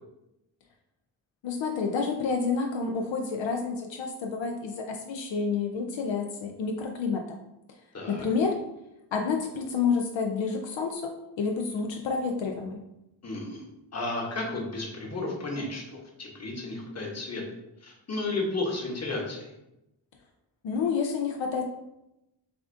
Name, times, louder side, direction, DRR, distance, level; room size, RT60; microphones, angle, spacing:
voice 1, 1.4-7.4 8.1-8.6 9.1-12.8 20.6-21.6, left 5 dB, 80° left, 3 dB, 0.6 m, -29 dB
voice 2, 7.9-8.2 13.2-13.6 13.9-17.4 17.8-19.5, left 2 dB, 35° left, -1 dB, 1.1 m, -33 dB
6.8 x 2.4 x 2.6 m, 0.91 s
wide cardioid pair, 100°, 45 cm